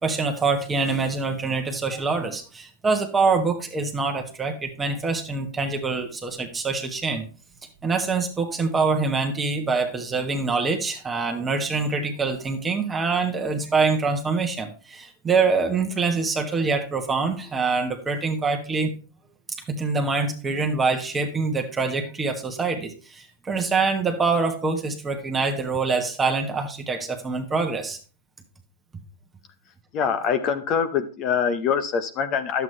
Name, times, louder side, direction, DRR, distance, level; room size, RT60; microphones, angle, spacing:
voice 1, 0.0-7.3 7.8-18.9 19.7-28.0, right 4 dB, 15° right, 3 dB, 1.2 m, -25 dB
voice 2, 29.9-32.6, left 7 dB, 35° left, 9 dB, 0.8 m, -24 dB
10.5 x 8.0 x 3.2 m, 0.36 s
hypercardioid pair, 130°, 0 cm